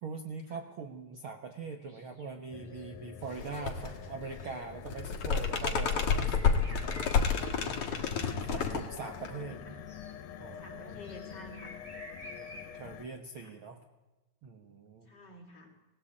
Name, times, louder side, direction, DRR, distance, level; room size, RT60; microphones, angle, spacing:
voice 1, 0.0-6.4 6.7-7.0 7.5-9.6 10.4-11.0 12.4-13.8 14.4-15.1, right 4 dB, 55° right, 5 dB, 1.6 m, -43 dB
sound 1, 1.8-2.3 2.6-3.0 3.5-3.7 4.2-4.6 5.6-8.9 9.9-10.1 11.0-12.7, right 1 dB, 15° right, 5.2 m, -51 dB
sound 2, 2.5-13.1, left 8 dB, 80° left, 2.7 m, -47 dB
sound 3, 3.3-3.9 4.2-9.4, left 6 dB, 55° left, 2.6 m, -30 dB
voice 2, 3.5-3.9 8.2-8.8 9.3-9.8 10.6-11.8 13.4-13.5 15.1-15.7, left 1 dB, 35° left, 0 dB, 3.6 m, -50 dB
19.0 x 17.5 x 8.7 m, 1.1 s
omnidirectional pair, 3.5 m